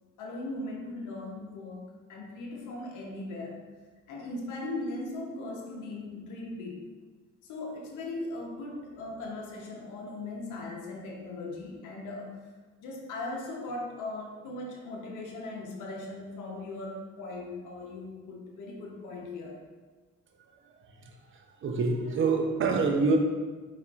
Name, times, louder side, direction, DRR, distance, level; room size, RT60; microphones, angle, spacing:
voice 1, 0.2-3.6 4.1-6.8 7.4-12.4 12.8-19.6, left 2 dB, 85° left, -1 dB, 0.8 m, -39 dB
voice 2, 21.0-23.2, right 4 dB, 40° right, 3 dB, 0.6 m, -27 dB
4.2 x 4.1 x 2.4 m, 1.3 s
cardioid pair, 90°, 30 cm